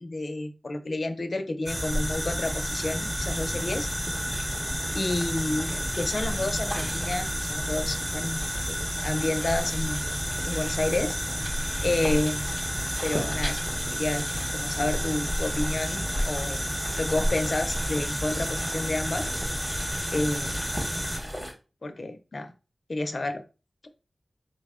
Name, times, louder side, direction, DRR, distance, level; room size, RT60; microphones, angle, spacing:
voice 1, 0.0-3.9 4.9-8.4 8.7-8.8 9.0-10.0 10.5-11.2 11.8-12.5 13.0-13.7 13.9-14.3 14.5-16.7 17.0-19.3 20.1-20.6 21.8-22.5 22.9-23.4, left 2 dB, 60° left, 0.5 m, -30 dB
sound 1, 1.7-21.5, equal, 15° right, 0.9 m, -30 dB
3.8 x 2.1 x 3.5 m
wide cardioid pair, 85°, 0 cm